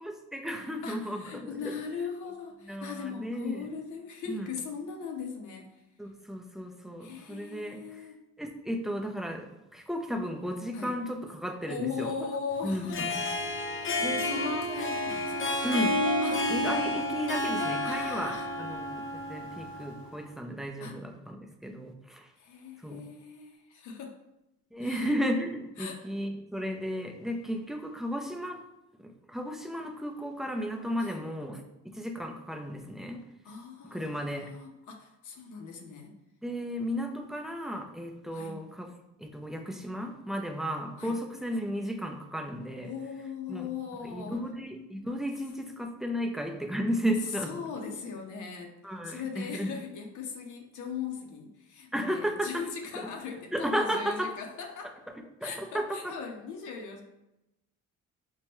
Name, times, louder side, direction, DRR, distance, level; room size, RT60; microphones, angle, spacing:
voice 1, 0.0-1.8 2.7-3.7 4.3-4.5 6.0-8.1 8.4-12.2 12.6-13.3 14.0-14.6 15.6-16.0 16.5-18.3 18.6-22.3 22.8-23.1 24.7-28.6 29.0-33.3 33.9-34.5 36.4-38.9 39.2-42.9 43.5-43.7 44.0-47.5 48.8-49.7 51.9-52.6 53.0-53.1 53.5-54.3 55.4-56.0, equal, ahead, 3 dB, 0.4 m, -34 dB
voice 2, 0.8-5.7 7.0-8.1 10.7-11.0 11.7-13.1 14.0-15.3 16.2-16.5 17.8-18.5 20.8-21.0 22.4-24.1 24.8-25.1 25.8-26.0 31.0-31.3 33.4-36.1 38.3-38.6 41.0-41.2 42.8-44.4 47.5-48.7 49.0-54.9 55.4-57.0, left 6 dB, 80° left, 2 dB, 0.7 m, -39 dB
Harp, 12.7-20.1, left 1 dB, 40° left, 0.6 m, -30 dB
4.5 x 2.2 x 3.0 m, 0.90 s
cardioid pair, 90°, 30 cm